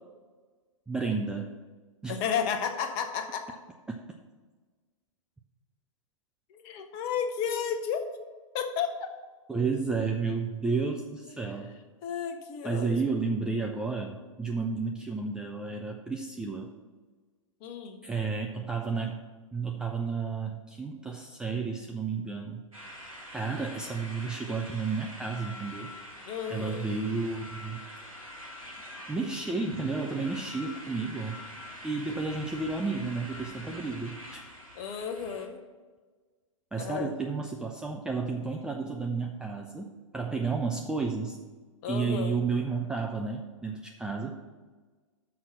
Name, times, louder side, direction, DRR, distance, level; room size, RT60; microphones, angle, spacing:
voice 1, 0.9-1.5 2.0-2.2 3.9-4.0 9.5-11.7 12.6-16.7 18.0-19.2 19.5-22.6 23.3-25.9 26.5-27.8 29.1-31.4 31.8-34.4 36.7-39.9 40.1-41.4 41.9-44.4, right 4 dB, 5° right, 1 dB, 0.4 m, -32 dB
voice 2, 2.1-3.6 6.5-8.0 8.5-9.1 12.0-13.1 17.6-18.0 26.2-26.8 34.8-35.6 36.8-37.1 41.8-42.4, left 7 dB, 35° left, 6 dB, 0.9 m, -32 dB
sound 1, 22.7-35.5, left 1 dB, 85° right, 2.3 m, -45 dB
6.5 x 5.5 x 7.2 m, 1.4 s
figure-of-eight pair, 110°, 17 cm